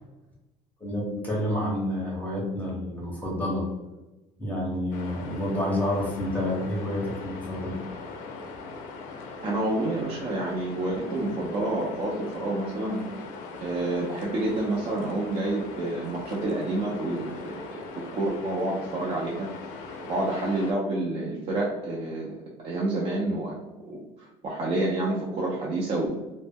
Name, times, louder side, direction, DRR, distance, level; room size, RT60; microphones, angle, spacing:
voice 1, 0.8-3.6 4.4-7.8, left 1 dB, 10° left, -4 dB, 0.7 m, -29 dB
sound 1, 4.9-20.7, left 4 dB, 85° left, 0.4 m, -41 dB
voice 2, 9.4-13.0 13.6-17.8 18.1-19.5 20.1-22.3 22.6-23.6 23.9-26.1, right 2 dB, 50° right, -4 dB, 0.5 m, -28 dB
2.1 x 2.0 x 3.4 m, 1.1 s
cardioid pair, 120°, 13 cm